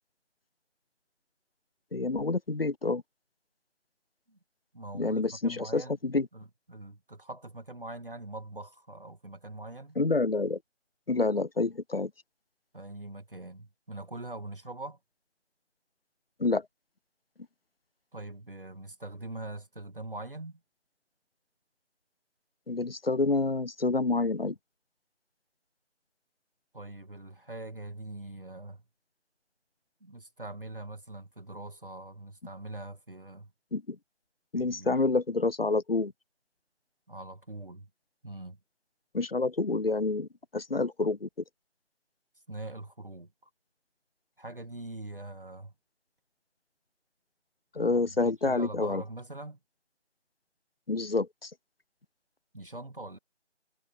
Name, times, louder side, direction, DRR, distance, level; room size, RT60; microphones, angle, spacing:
voice 1, 1.9-3.0 4.9-6.3 10.0-10.6 11.1-12.1 16.4-16.7 22.7-24.6 33.7-34.0 34.5-36.1 39.1-40.3 40.5-41.3 47.8-49.0 50.9-51.5, left 3 dB, 55° left, 0.5 m, -28 dB
voice 2, 4.7-6.0 6.3-10.0 12.7-15.0 18.1-20.6 26.7-28.8 30.0-33.5 34.5-35.0 37.1-37.9 38.2-38.6 42.5-43.5 44.4-45.7 47.8-49.6 52.5-53.2, right 2 dB, 45° right, 2.0 m, -43 dB
figure-of-eight pair, 180°, 36 cm